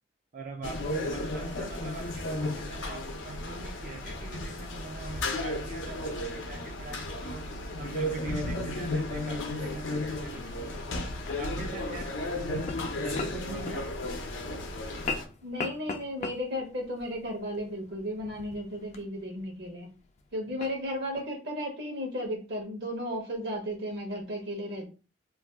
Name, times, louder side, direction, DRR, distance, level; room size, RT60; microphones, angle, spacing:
voice 1, 0.3-7.5 7.8-11.1 11.4-12.6 13.0-13.9, right 3 dB, 45° right, 0.4 m, -42 dB
sound 1, 0.6-15.3, left 1 dB, 85° left, 0.6 m, -34 dB
sound 2, 6.1-21.3, left 4 dB, 40° left, 0.3 m, -44 dB
voice 2, 15.4-19.9 20.3-24.8, equal, 60° right, 0.8 m, -34 dB
2.5 x 2.2 x 3.4 m
head